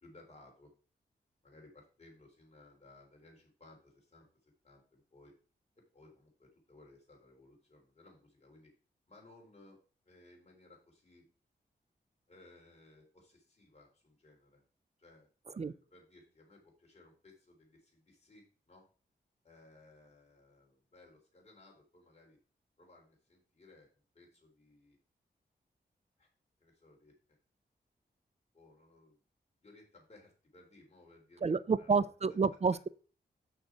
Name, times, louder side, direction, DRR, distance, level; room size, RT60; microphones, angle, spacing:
voice 1, 0.0-0.7 1.4-5.3 5.9-8.7 9.1-9.8 10.0-11.3 12.3-14.6 15.0-18.9 19.4-22.4 22.8-25.0 26.2-26.3 26.6-27.4 28.5-29.2 29.6-32.1, left 2 dB, 35° left, -1 dB, 3.7 m, -60 dB
voice 2, 31.4-32.9, right 5 dB, 35° right, 16 dB, 0.4 m, -29 dB
6.7 x 6.4 x 4.6 m, 0.38 s
wide cardioid pair, 95°, 18 cm